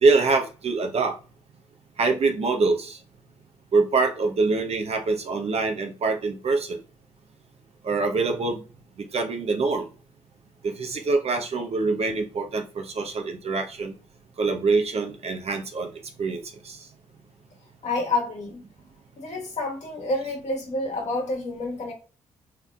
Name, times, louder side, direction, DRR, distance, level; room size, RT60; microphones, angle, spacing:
voice 1, 0.0-1.2 2.0-3.0 3.7-6.8 7.8-8.6 9.1-9.9 10.6-13.9 14.4-15.9 16.2-16.8, right 3 dB, 50° right, 0.9 m, -24 dB
voice 2, 17.8-18.6 19.2-21.9, left 2 dB, 55° left, 1.8 m, -28 dB
3.5 x 3.4 x 2.4 m
hypercardioid pair, 45°, 14 cm